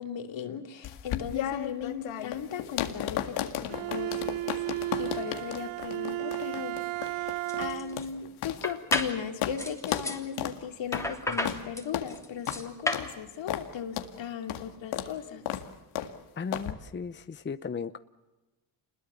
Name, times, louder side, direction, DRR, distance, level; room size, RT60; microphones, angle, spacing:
voice 1, 0.0-4.4 5.0-6.8 7.1-15.4, left 8 dB, 65° left, 6 dB, 2.9 m, -37 dB
sound 1, 0.8-9.1 9.4-9.6 9.8-10.1 10.4-10.6 10.9-11.1 11.4-11.6 11.9-12.1 12.5-12.6 12.9-13.1 13.5-13.7 14.0-14.1 14.5-14.7 14.9-15.1 15.5-15.7 16.0-16.1 16.5-16.7, left 12 dB, 85° left, 2.0 m, -34 dB
Bowed string instrument, 3.7-8.1, right 17 dB, 80° right, 0.8 m, -34 dB
sound 2, 6.9-7.1 7.5-8.0 8.6-9.2 9.6-10.2 10.9-13.1, left 1 dB, 5° left, 3.1 m, -32 dB
voice 2, 16.4-18.0, left 5 dB, 25° left, 12 dB, 0.8 m, -36 dB
27.5 x 21.5 x 7.1 m, 1.1 s
cardioid pair, 80°, 48 cm